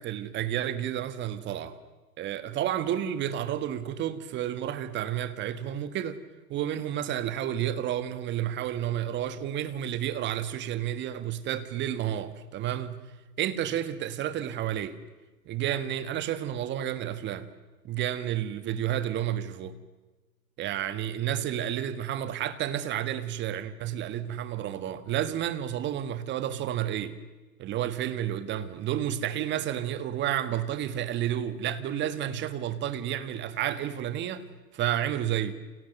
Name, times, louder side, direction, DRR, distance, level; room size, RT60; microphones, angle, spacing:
voice 1, 0.0-1.8 2.2-6.2 6.5-13.0 13.4-15.0 15.4-17.5 17.8-19.8 20.6-27.2 27.6-34.5 34.7-35.6, right 11 dB, 25° right, 1.6 m, -31 dB
29.5 x 29.0 x 6.7 m
hypercardioid pair, 120°, 48 cm